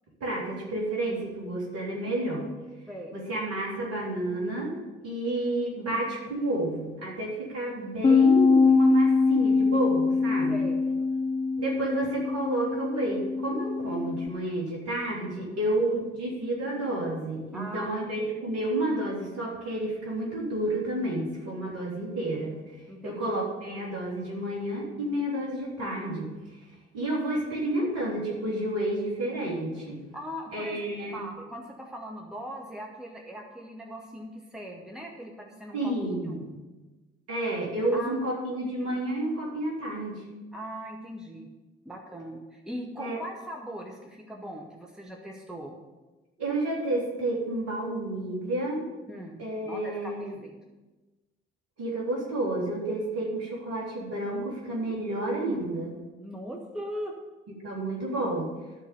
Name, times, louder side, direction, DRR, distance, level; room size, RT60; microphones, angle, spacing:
voice 1, 0.2-2.5 3.1-4.7 5.0-10.7 11.6-22.6 23.0-26.3 26.9-30.0 30.5-31.2 35.7-36.5 37.3-40.2 43.0-43.2 46.4-48.9 49.4-50.3 51.8-56.0 57.6-58.5, right 1 dB, 50° right, -4 dB, 3.6 m, -30 dB
Bass guitar, 8.0-14.3, left 4 dB, 15° left, 0.7 m, -23 dB
voice 2, 17.5-18.0 21.6-21.7 22.9-23.2 30.1-36.4 37.9-38.1 40.5-41.5 41.8-45.7 49.1-50.5 56.2-57.2, equal, ahead, 0 dB, 1.3 m, -40 dB
12.5 x 4.8 x 6.9 m, 1.2 s
figure-of-eight pair, 50°, 31 cm